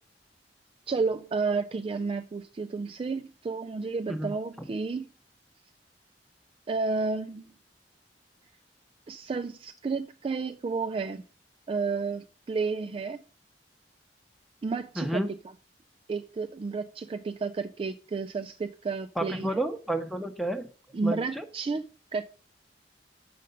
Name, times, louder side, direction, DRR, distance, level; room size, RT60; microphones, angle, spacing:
voice 1, 0.9-5.1 6.7-7.4 9.1-11.2 11.7-13.2 14.6-15.2 16.1-19.6 20.9-21.8 22.1-22.2, right 4 dB, 30° right, 0.3 m, -31 dB
voice 2, 15.0-15.3 19.2-20.7 21.0-21.4, right 1 dB, ahead, 0.8 m, -30 dB
6.7 x 5.2 x 5.2 m
head